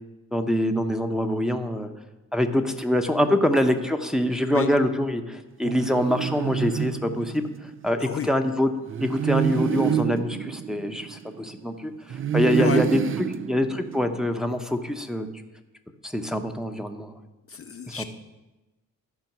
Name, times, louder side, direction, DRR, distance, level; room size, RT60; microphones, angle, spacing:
voice 1, 0.3-1.9 2.3-7.4 7.8-8.7 9.0-13.0 13.5-15.3 16.0-17.1 17.9-18.0, left 1 dB, ahead, 4 dB, 0.8 m, -24 dB
sound 1, 5.6-7.7 8.9-11.6 12.1-14.3, right 9 dB, 40° right, 0.4 m, -28 dB
voice 2, 8.0-8.3 12.6-12.8 17.5-18.0, left 7 dB, 40° left, 7 dB, 0.5 m, -30 dB
13.5 x 5.3 x 6.0 m, 1.1 s
cardioid pair, 90°, 34 cm